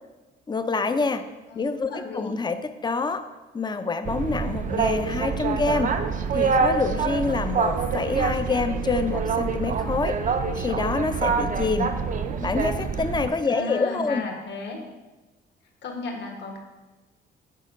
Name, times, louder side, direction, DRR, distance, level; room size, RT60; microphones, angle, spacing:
voice 1, 0.5-1.3 1.5-3.3 3.5-6.0 6.3-10.2 10.5-11.9 12.4-14.3, left 4 dB, 20° left, 10 dB, 0.5 m, -26 dB
voice 2, 1.5-2.3 13.5-14.8 15.8-16.6, left 3 dB, 60° left, 2 dB, 1.4 m, -34 dB
Boat Water vehicle, 4.1-13.3, right 5 dB, 40° right, 0.5 m, -26 dB
6.5 x 4.4 x 5.1 m, 1.2 s
cardioid pair, 90°, 20 cm